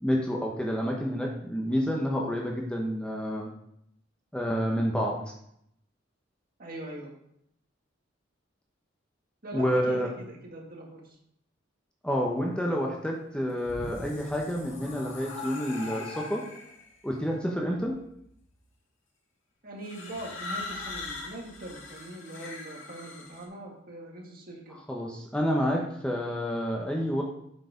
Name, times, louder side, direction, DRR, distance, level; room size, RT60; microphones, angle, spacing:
voice 1, 0.0-3.5 4.3-5.2 9.5-10.1 12.0-16.4 17.0-18.0 24.9-27.2, equal, 5° left, -1 dB, 0.9 m, -29 dB
voice 2, 6.6-7.1 9.4-11.2 19.6-24.8, right 1 dB, 50° right, 0 dB, 1.9 m, -42 dB
sound 1, 13.4-16.9 17.8-18.2 19.8-23.4, left 3 dB, 75° left, 1.7 m, -41 dB
7.9 x 4.7 x 5.1 m, 0.72 s
head